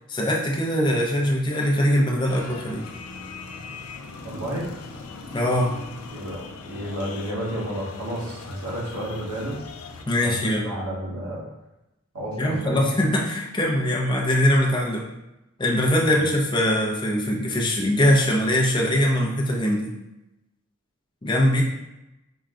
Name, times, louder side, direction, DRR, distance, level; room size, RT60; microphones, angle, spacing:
voice 1, 0.1-2.8 5.3-5.8 10.1-10.6 12.4-15.0 15.6-19.9 21.2-21.6, equal, 20° left, -1 dB, 0.5 m, -22 dB
sound 1, 2.3-10.0, left 4 dB, 80° left, 0.5 m, -40 dB
voice 2, 4.2-4.7 6.1-9.6 10.2-11.4 12.1-12.9 16.1-16.3, right 1 dB, 85° right, -5 dB, 1.3 m, -31 dB
4.6 x 2.2 x 3.7 m, 0.93 s
head